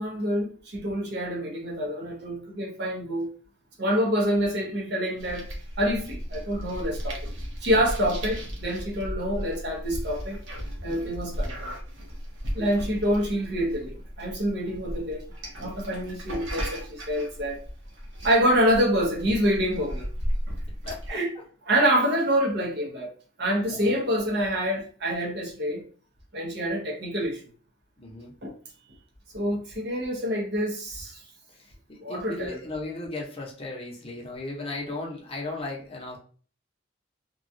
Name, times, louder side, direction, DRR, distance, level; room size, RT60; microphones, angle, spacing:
voice 1, 0.0-3.3 3.8-5.5 5.8-7.3 7.6-10.4 10.8-11.7 12.5-15.2 15.6-17.6 18.2-20.1 21.1-21.3 21.7-23.1 23.4-25.8 26.3-27.4 28.4-28.5 29.3-31.2 32.0-32.6, equal, 60° right, 0.8 m, -26 dB
sound 1, 5.2-21.1, equal, 85° right, 0.9 m, -35 dB
voice 2, 20.9-21.2 23.7-23.9 28.0-28.3 31.9-36.2, left 2 dB, 30° left, 0.8 m, -36 dB
3.0 x 2.3 x 2.6 m
head